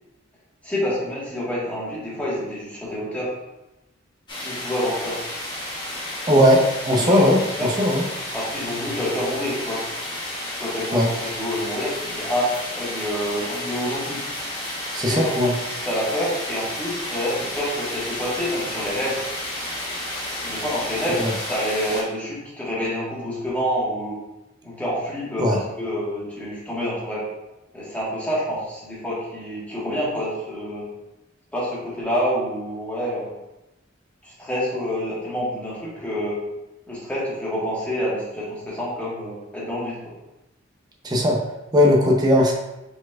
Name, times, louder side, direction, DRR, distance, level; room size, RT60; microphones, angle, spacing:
voice 1, 0.6-3.4 4.4-5.2 7.0-7.7 8.3-9.9 10.5-14.2 15.0-15.4 15.8-19.2 20.4-24.2 24.6-27.3 27.7-30.9 31.5-33.3 34.2-36.4 36.9-40.1, equal, 10° left, -8 dB, 1.4 m, -27 dB
sound 1, 4.3-22.0, left 1 dB, 25° left, 1.1 m, -31 dB
voice 2, 6.3-7.4 7.8-8.0 10.9-11.1 14.9-15.5 21.2-21.3 25.4-25.6 41.0-41.4 41.7-42.5, left 1 dB, 20° right, 0 dB, 0.6 m, -17 dB
5.0 x 4.0 x 2.4 m, 0.97 s
head